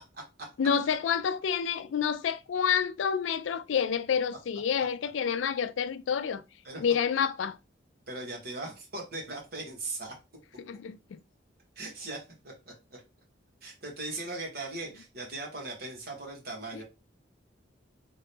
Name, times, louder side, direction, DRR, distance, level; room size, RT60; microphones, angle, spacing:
voice 1, 0.6-6.4 6.8-7.6 10.6-11.2 16.7-16.8, left 7 dB, 75° left, 0.4 m, -28 dB
voice 2, 8.1-10.1 11.7-12.5 13.6-16.8, right 2 dB, 55° right, 1.5 m, -39 dB
3.8 x 2.8 x 3.5 m
head